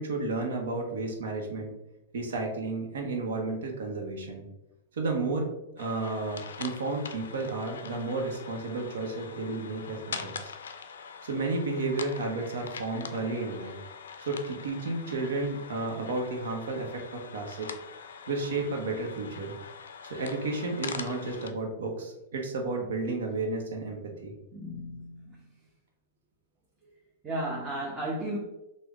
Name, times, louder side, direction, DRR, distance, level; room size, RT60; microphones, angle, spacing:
voice 1, 0.0-1.7 2.1-4.4 4.9-5.5 5.8-10.5 11.2-13.7 14.2-17.7 18.3-19.5 20.0-24.3, right 3 dB, 80° right, 1 dB, 0.8 m, -32 dB
sound 1, 5.8-21.5, left 6 dB, 90° left, 0.3 m, -43 dB
voice 2, 24.5-25.4 27.2-28.4, right 1 dB, 20° right, -4 dB, 0.7 m, -34 dB
3.4 x 2.1 x 3.5 m, 0.90 s
hypercardioid pair, 125°, 0 cm